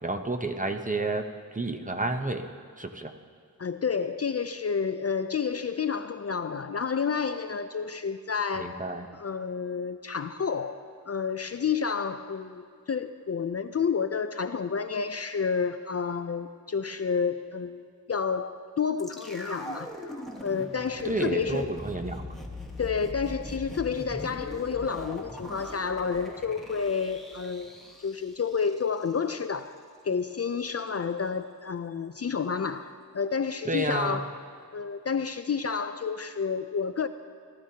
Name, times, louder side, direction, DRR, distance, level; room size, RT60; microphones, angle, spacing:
voice 1, 0.0-1.3 1.5-2.5 2.8-3.1 8.6-9.0 21.0-22.3 33.6-34.2, right 2 dB, 20° right, 6 dB, 0.8 m, -30 dB
voice 2, 3.6-8.8 9.1-10.8 11.1-19.9 20.4-21.7 22.8-27.7 28.0-29.8 30.0-34.3 34.7-37.1, left 6 dB, 45° left, 10 dB, 0.4 m, -30 dB
sound 1, 19.0-29.1 29.4-29.5, left 1 dB, ahead, 1.4 m, -41 dB
17.5 x 12.5 x 2.8 m, 2.2 s
wide cardioid pair, 45°, 36 cm